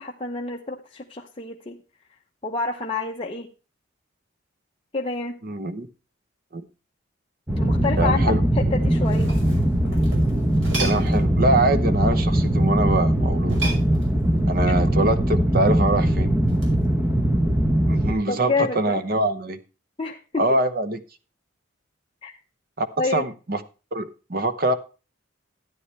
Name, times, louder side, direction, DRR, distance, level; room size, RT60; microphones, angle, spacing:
voice 1, 0.0-1.8 2.4-3.5 4.9-5.4 7.6-9.3 14.6-14.7 18.3-19.0 20.0-20.6 22.2-22.4 23.0-23.2, left 3 dB, 25° left, 0.8 m, -28 dB
voice 2, 5.4-5.9 6.5-6.6 8.0-8.4 10.8-13.6 14.5-16.3 17.9-19.6 20.4-21.0 22.8-22.9 23.1-23.6 23.9-24.7, right 2 dB, 45° right, 0.9 m, -24 dB
sound 1, 7.5-18.1, right 1 dB, 10° right, 0.9 m, -21 dB
sound 2, 8.9-11.3 13.4-14.4 16.5-16.8, right 2 dB, 70° right, 5.6 m, -34 dB
13.0 x 9.5 x 3.3 m
head